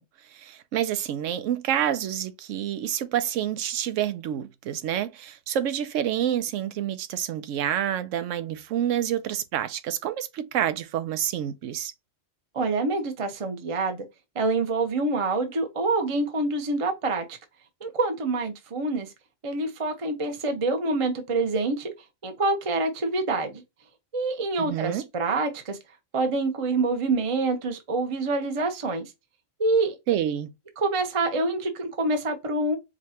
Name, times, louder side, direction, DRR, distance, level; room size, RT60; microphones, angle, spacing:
voice 1, 0.2-11.9 24.6-25.1 30.1-30.5, right 10 dB, 80° right, 0.9 m, -28 dB
voice 2, 12.5-14.0 14.3-17.2 17.8-19.1 19.4-21.9 22.2-23.6 24.1-25.8 26.1-29.1 29.6-30.0 30.8-32.8, right 3 dB, 35° right, 0.7 m, -26 dB
4.8 x 2.3 x 2.8 m
omnidirectional pair, 1.3 m